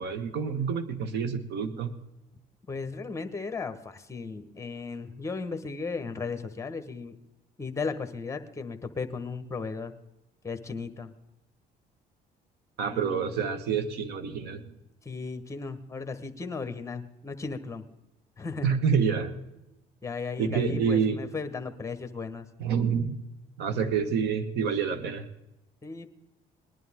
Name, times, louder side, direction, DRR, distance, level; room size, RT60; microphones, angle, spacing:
voice 1, 0.0-1.9 12.8-14.7 18.6-19.3 20.4-21.2 22.6-23.2 23.6-25.3, right 6 dB, 80° right, 10 dB, 1.5 m, -27 dB
voice 2, 2.7-7.2 7.6-9.9 10.4-11.1 12.9-13.3 15.0-17.9 18.4-18.8 20.0-22.5 25.8-26.1, left 4 dB, 15° left, 9 dB, 1.2 m, -36 dB
20.0 x 11.0 x 3.7 m, 0.89 s
cardioid pair, 110°, 17 cm